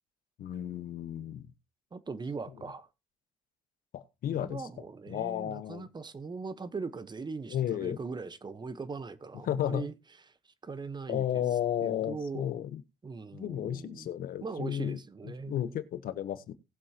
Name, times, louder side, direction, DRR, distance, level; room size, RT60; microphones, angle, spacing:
voice 1, 0.4-1.5 3.9-4.7 5.1-5.9 7.5-8.0 9.4-9.9 11.1-12.8 13.3-16.5, left 10 dB, 65° left, 1.0 m, -33 dB
voice 2, 1.9-2.9 4.3-9.9 10.6-11.4 11.8-12.5 13.0-14.1 14.4-15.8, right 4 dB, 25° right, 1.1 m, -40 dB
19.0 x 7.5 x 2.9 m
supercardioid pair, 75°, 16 cm